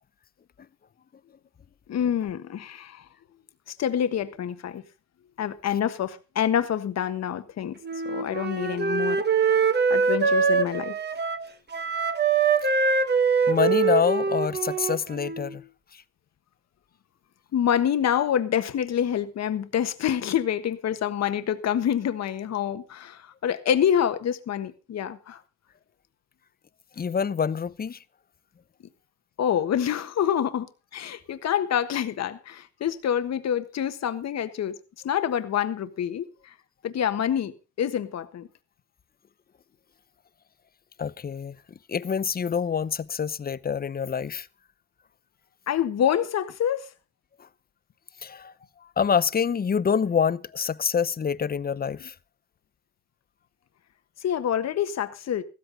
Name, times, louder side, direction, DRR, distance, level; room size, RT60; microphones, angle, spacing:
voice 1, 1.9-3.0 3.8-4.8 5.4-7.8 8.0-9.2 9.6-9.7 9.9-10.9 17.5-25.4 29.4-34.7 35.0-36.5 36.8-38.5 45.7-46.9 54.2-55.4, left 9 dB, 60° left, 1.4 m, -27 dB
Wind instrument woodwind instrument, 7.8-15.6, right 5 dB, 35° right, 1.6 m, -24 dB
voice 2, 13.5-15.6 27.0-28.0 41.0-41.6 41.9-44.5 48.2-48.5 49.0-52.1, left 7 dB, 30° left, 0.7 m, -26 dB
15.0 x 13.5 x 4.0 m
cardioid pair, 90°, 30 cm